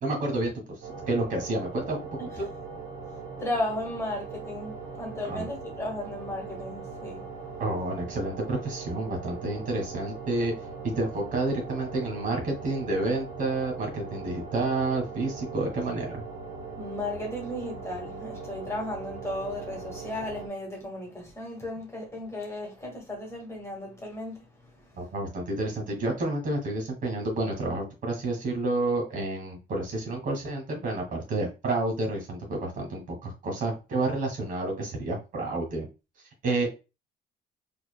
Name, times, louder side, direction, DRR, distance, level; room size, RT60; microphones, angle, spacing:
voice 1, 0.0-0.5 1.1-2.0 2.4-2.5 5.2-5.4 7.6-10.5 11.0-16.2 25.0-35.9 36.4-36.7, right 2 dB, 55° right, 1.9 m, -29 dB
sound 1, 0.8-20.5, right 4 dB, 80° right, 1.4 m, -40 dB
voice 2, 3.4-7.3 16.8-24.4, left 1 dB, 15° left, 1.8 m, -35 dB
4.5 x 3.1 x 2.2 m
cardioid pair, 110°, 17 cm